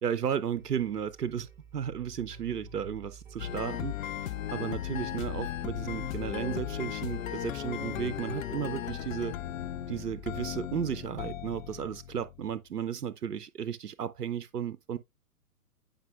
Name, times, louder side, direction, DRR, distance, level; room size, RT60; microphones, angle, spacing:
voice 1, 0.0-9.3 9.9-15.0, right 8 dB, 90° right, 0.6 m, -34 dB
sound 1, 0.5-11.1, right 3 dB, 10° right, 2.6 m, -52 dB
sound 2, 3.4-12.6, left 11 dB, 60° left, 0.5 m, -36 dB
8.8 x 5.1 x 2.4 m
figure-of-eight pair, 115°, 46 cm